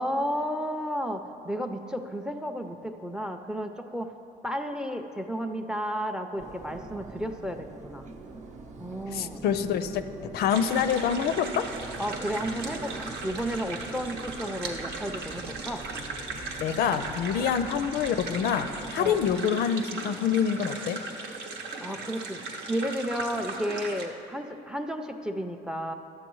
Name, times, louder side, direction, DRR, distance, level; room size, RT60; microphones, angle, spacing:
voice 1, 0.0-4.1 4.4-8.1 8.8-9.4 12.0-15.9 16.9-17.0 17.3-17.6 19.0-19.2 21.8-22.4 22.7-25.9, equal, 5° right, 7 dB, 0.4 m, -33 dB
sound 1, 6.4-19.4, right 3 dB, 45° right, 0.7 m, -44 dB
voice 2, 9.1-10.0 10.3-11.7 16.6-21.0, left 8 dB, 70° left, 10 dB, 0.4 m, -26 dB
sound 2, 10.5-24.1, right 3 dB, 85° right, 0.9 m, -38 dB
12.0 x 7.8 x 3.1 m, 2.8 s
cardioid pair, 110°, 17 cm